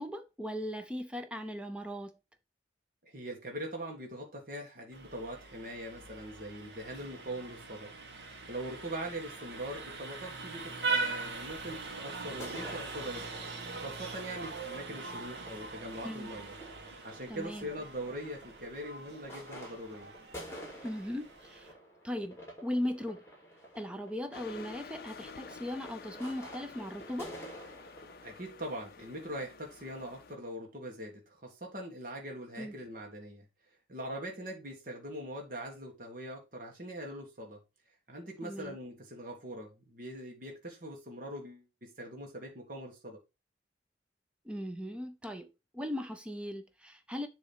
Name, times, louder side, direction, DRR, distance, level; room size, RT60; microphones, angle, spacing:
voice 1, 0.0-2.2 16.0-16.3 17.3-17.7 20.8-21.7 22.0-23.2 23.7-27.4 32.6-32.7 38.4-38.8 44.5-45.5 45.7-47.3, left 1 dB, 5° right, 0.6 m, -38 dB
voice 2, 3.1-7.9 8.2-13.4 13.8-16.5 17.0-20.1 28.2-33.4 33.9-37.6 38.1-43.2, right 1 dB, 45° right, 1.5 m, -42 dB
Vehicle horn car horn honking, 4.9-21.7, right 3 dB, 70° right, 1.5 m, -41 dB
sound 1, 12.3-28.4, equal, 15° left, 2.4 m, -50 dB
sound 2, 24.3-30.4, left 5 dB, 55° left, 0.5 m, -50 dB
7.2 x 3.1 x 5.3 m
head